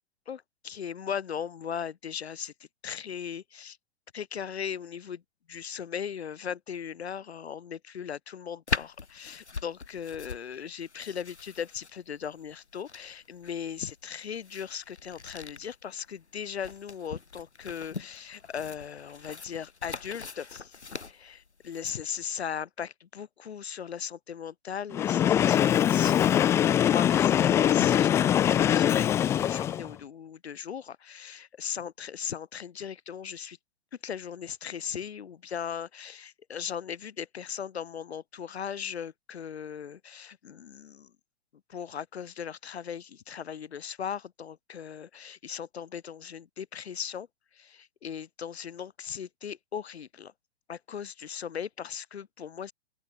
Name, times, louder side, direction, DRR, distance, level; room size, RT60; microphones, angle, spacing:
voice 1, 0.3-2.5 2.8-3.8 4.1-5.2 5.5-20.8 21.1-33.6 34.0-41.1 41.7-47.3 47.5-50.3 50.7-52.7, left 8 dB, 70° left, 3.1 m, -38 dB
sound 1, 8.7-21.9, left 4 dB, 90° left, 3.6 m, -41 dB
Train, 24.9-29.9, left 10 dB, 10° left, 0.3 m, -23 dB
open air
figure-of-eight pair, 115°, 33 cm